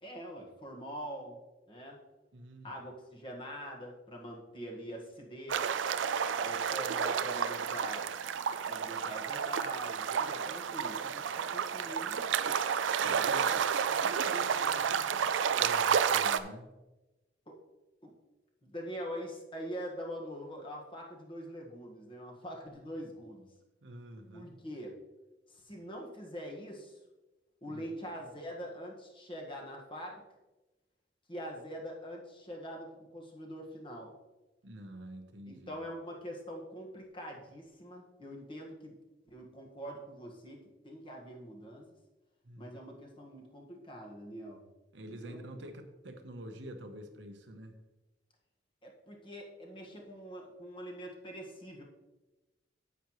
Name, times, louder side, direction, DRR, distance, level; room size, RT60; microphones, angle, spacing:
voice 1, 0.0-1.4 1.7-2.0 2.6-5.7 6.4-8.1 8.7-12.8 13.0-13.9 17.5-17.6 18.0-18.1 18.6-23.5 24.3-25.0 25.5-27.0 27.6-30.2 31.3-34.1 35.5-39.0 39.3-40.6 40.8-41.9 42.6-44.6 45.1-45.4 48.8-51.8, equal, 30° left, 0 dB, 1.6 m, -44 dB
voice 2, 2.3-2.7 13.0-13.5 13.9-16.7 23.8-24.6 27.7-27.9 34.6-35.8 42.4-42.8 44.9-47.7, right 1 dB, 70° right, 6 dB, 1.0 m, -47 dB
sound 1, 5.5-16.4, right 7 dB, 85° right, 0.4 m, -31 dB
9.5 x 8.1 x 3.1 m, 1.1 s
head